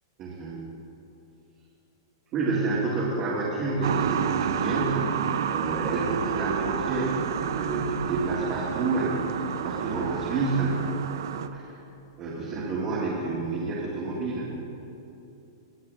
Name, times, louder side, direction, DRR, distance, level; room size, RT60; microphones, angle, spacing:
voice 1, 0.2-0.7 2.3-10.9 11.5-11.8 12.2-14.6, right 3 dB, 30° right, -7 dB, 2.2 m, -29 dB
sound 1, 3.8-11.5, right 8 dB, 75° right, 0.6 m, -30 dB
21.0 x 7.6 x 3.5 m, 2.8 s
hypercardioid pair, 150°, 2 cm